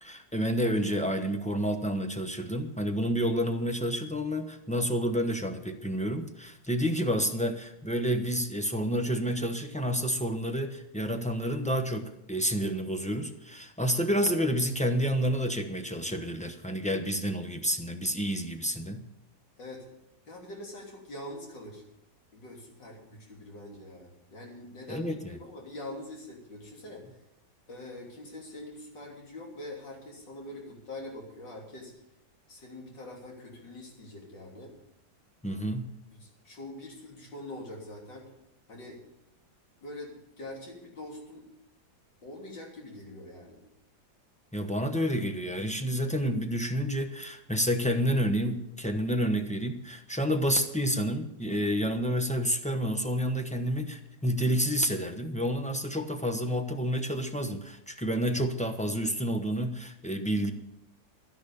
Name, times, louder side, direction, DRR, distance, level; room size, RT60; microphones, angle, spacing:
voice 1, 0.0-19.0 24.9-25.4 35.4-35.9 44.5-60.5, equal, 5° left, 5 dB, 0.6 m, -29 dB
voice 2, 20.3-21.8 22.3-27.1 27.7-31.9 32.5-34.7 35.5-35.6 36.1-38.3 38.7-39.0 39.8-41.5 42.2-43.6, left 1 dB, 75° left, -1 dB, 3.9 m, -44 dB
12.5 x 10.5 x 7.0 m, 0.83 s
omnidirectional pair, 1.9 m